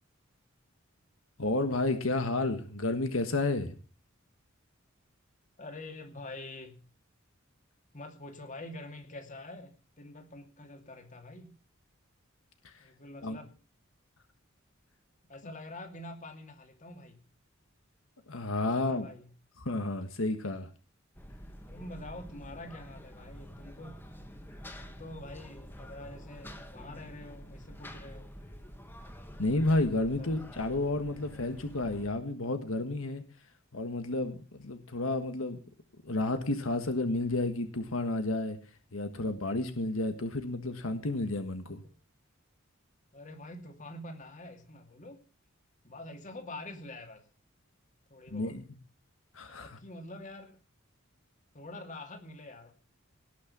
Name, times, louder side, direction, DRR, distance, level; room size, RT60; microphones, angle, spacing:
voice 1, 1.4-3.8 12.6-12.8 13.2-13.4 18.3-19.1 19.6-20.7 29.4-33.2 33.7-35.6 36.0-38.6 38.9-41.8 48.3-48.6 49.3-49.8, left 2 dB, 80° left, 7 dB, 1.6 m, -31 dB
voice 2, 5.6-6.8 7.9-11.5 12.8-13.6 15.3-17.2 18.6-19.3 21.7-24.3 24.8-28.3 30.1-30.3 43.1-45.2 45.8-47.2 48.1-48.6 49.5-50.6 51.5-52.7, left 2 dB, 40° left, 4 dB, 2.6 m, -46 dB
sound 1, 21.2-32.1, equal, 10° left, 1.6 m, -48 dB
18.0 x 6.5 x 7.2 m, 0.38 s
head